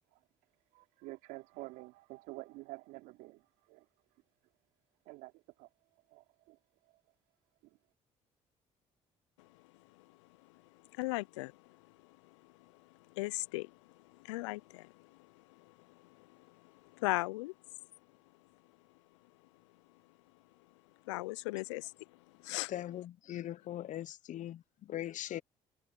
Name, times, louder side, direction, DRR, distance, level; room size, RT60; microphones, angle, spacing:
voice 1, 0.7-3.9 5.0-5.7 6.1-6.6 7.6-7.8, right 21 dB, 75° right, 3.0 m, -49 dB
voice 2, 11.0-11.5 13.2-13.7 14.2-14.9 17.0-17.5 21.1-21.9 22.4-22.7, left 22 dB, 85° left, 0.5 m, -36 dB
voice 3, 22.7-24.6 24.9-25.4, left 12 dB, 55° left, 0.9 m, -40 dB
hypercardioid pair, 55°, 15 cm